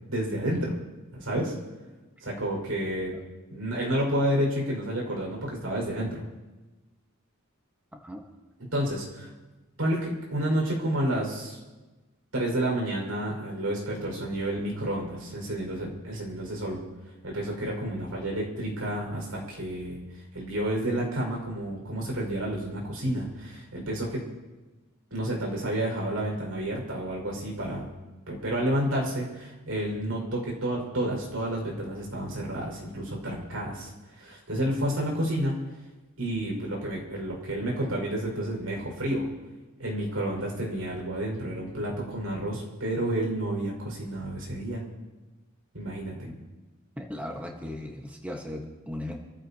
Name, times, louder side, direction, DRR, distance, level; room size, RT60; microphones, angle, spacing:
voice 1, 0.1-0.8 1.1-1.5 2.2-3.2 3.5-6.2 8.7-9.3 9.8-11.6 12.3-16.8 17.2-24.2 25.1-27.9 28.3-35.6 36.2-39.3 39.8-44.8 45.7-46.1, right 1 dB, 80° right, -1 dB, 5.9 m, -30 dB
voice 2, 47.0-49.2, left 1 dB, 5° right, 0 dB, 1.5 m, -37 dB
27.0 x 15.0 x 3.0 m, 1.2 s
head